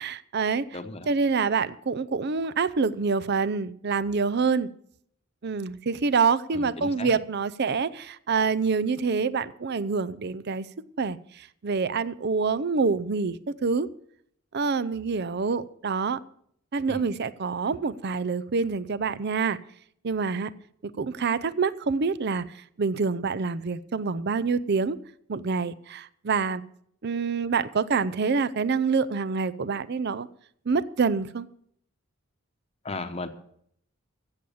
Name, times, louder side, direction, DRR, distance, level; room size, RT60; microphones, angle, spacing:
voice 1, 0.0-0.6 1.1-4.7 5.4-10.7 11.0-11.2 11.6-13.9 14.5-16.2 16.7-19.6 20.0-20.5 21.0-22.4 22.8-25.0 25.3-26.6 27.0-30.3 30.7-31.5, right 5 dB, 50° right, 16 dB, 0.5 m, -26 dB
voice 2, 0.7-1.1 6.5-7.1 16.9-17.1 32.8-33.3, left 3 dB, 30° left, 9 dB, 1.0 m, -36 dB
15.5 x 7.8 x 7.2 m, 0.67 s
head